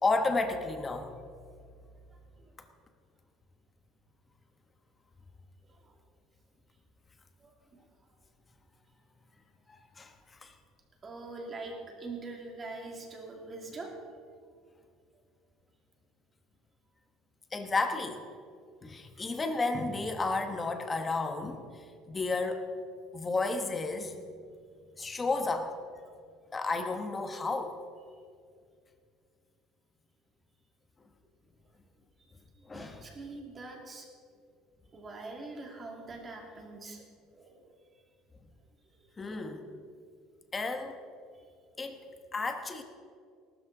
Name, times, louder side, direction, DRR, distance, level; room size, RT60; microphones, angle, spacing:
voice 1, 0.0-1.1 9.7-10.1 10.4-10.5 17.5-18.2 18.8-22.7 23.1-24.2 25.0-25.7 26.5-27.8 32.7-33.0 39.2-39.7 40.5-41.0 41.8-42.0 42.3-42.8, left 3 dB, 15° left, 6 dB, 1.1 m, -32 dB
voice 2, 11.0-13.9 32.7-34.1 34.9-37.0 37.3-37.7, right 3 dB, 20° right, 1 dB, 2.2 m, -43 dB
19.5 x 12.5 x 3.9 m, 2.2 s
cardioid pair, 160°, 0 cm